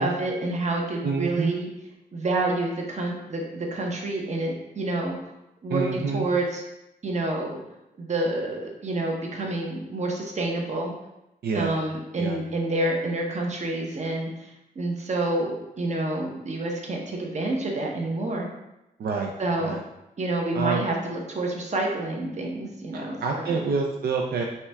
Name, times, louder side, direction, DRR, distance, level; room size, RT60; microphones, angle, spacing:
voice 1, 0.0-1.7 2.1-5.2 5.6-6.6 7.0-7.6 8.0-10.9 11.5-14.5 14.8-18.5 19.4-19.8 20.2-23.6, right 2 dB, 45° right, 0 dB, 0.8 m, -28 dB
voice 2, 1.0-1.6 5.7-6.3 11.4-11.7 12.2-12.4 19.0-19.3 19.6-19.8 20.5-20.8 22.9-24.4, right 4 dB, 80° right, 0 dB, 0.5 m, -27 dB
5.5 x 2.3 x 3.3 m, 0.90 s
wide cardioid pair, 115°, 16 cm